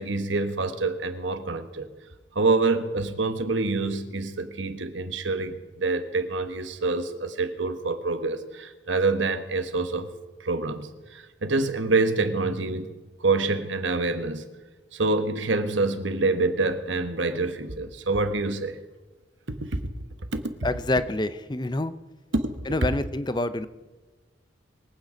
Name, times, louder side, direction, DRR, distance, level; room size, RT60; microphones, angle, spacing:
voice 1, 0.0-1.9 2.3-10.1 10.4-12.9 13.2-14.4 14.9-18.8 19.5-19.9 20.3-20.4 22.3-22.5 22.8-22.9, right 3 dB, 70° right, 8 dB, 1.4 m, -26 dB
voice 2, 20.6-21.9 22.7-23.7, left 2 dB, 20° left, 13 dB, 0.6 m, -27 dB
23.0 x 9.3 x 5.2 m, 1.3 s
head